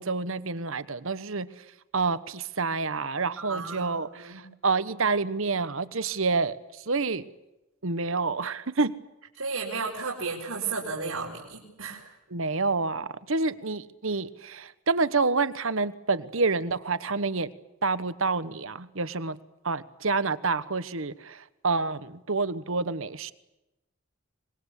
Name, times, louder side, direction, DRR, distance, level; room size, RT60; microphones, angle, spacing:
voice 1, 0.0-1.5 1.9-6.6 6.9-7.2 7.8-9.0 12.3-17.5 17.8-19.4 19.6-23.3, right 4 dB, 65° right, 14 dB, 1.2 m, -28 dB
voice 2, 3.4-4.4 9.4-12.1, right 4 dB, 85° right, -2 dB, 4.4 m, -34 dB
25.5 x 21.5 x 8.4 m, 0.95 s
head